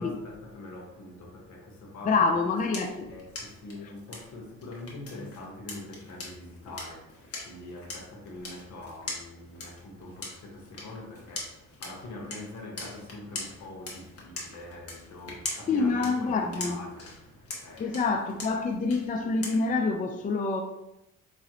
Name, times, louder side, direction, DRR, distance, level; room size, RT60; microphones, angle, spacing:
voice 1, 0.0-2.3 3.0-18.1, left 2 dB, 75° left, 1.3 m, -44 dB
voice 2, 2.1-3.1 15.7-16.8 17.8-20.6, left 4 dB, 25° left, 0.5 m, -27 dB
Blind person walking with White Cane, 2.2-19.9, left 2 dB, 50° left, 1.4 m, -43 dB
4.8 x 3.1 x 2.9 m
cardioid pair, 90°, 30 cm